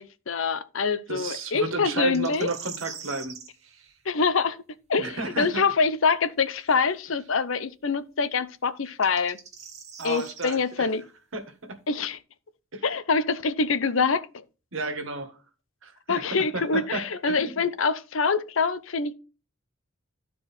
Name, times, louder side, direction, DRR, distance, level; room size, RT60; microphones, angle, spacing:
voice 1, 0.0-2.5 4.1-4.6 4.9-9.4 10.0-11.0 11.9-12.2 12.8-14.4 16.1-19.1, left 5 dB, 70° left, 0.7 m, -25 dB
voice 2, 1.1-3.4 3.6-3.9 5.0-5.6 10.0-10.9 11.3-11.8 12.7-12.8 14.7-15.4 15.8-17.6, right 3 dB, 70° right, 1.5 m, -33 dB
sound 1, 2.1-3.5 6.6-6.7 8.9-10.6, right 7 dB, 35° right, 1.2 m, -42 dB
12.5 x 4.7 x 4.3 m
head